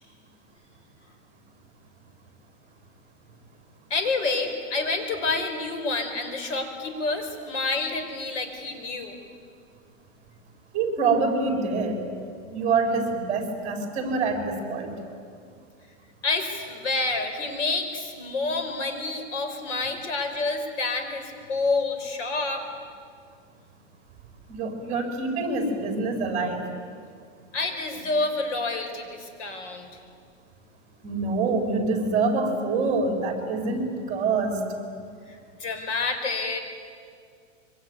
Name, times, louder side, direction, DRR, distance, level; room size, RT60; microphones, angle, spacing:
voice 1, 3.9-9.2 16.2-22.7 27.5-29.9 35.3-36.6, left 3 dB, 70° left, 6 dB, 5.3 m, -28 dB
voice 2, 10.7-12.0 12.5-15.0 24.5-26.6 28.0-28.1 31.0-34.6, right 4 dB, 20° right, 3 dB, 4.1 m, -26 dB
25.0 x 24.5 x 9.6 m, 2.2 s
supercardioid pair, 165°, 38 cm